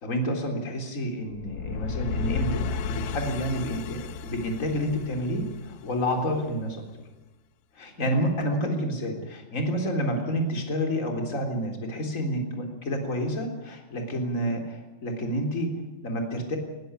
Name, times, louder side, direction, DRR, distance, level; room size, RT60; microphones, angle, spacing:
voice 1, 0.0-6.8 7.8-16.6, equal, 20° left, 3 dB, 3.5 m, -29 dB
sound 1, 1.3-6.3, left 5 dB, 85° left, 3.2 m, -33 dB
20.0 x 16.0 x 9.8 m, 1.1 s
omnidirectional pair, 4.9 m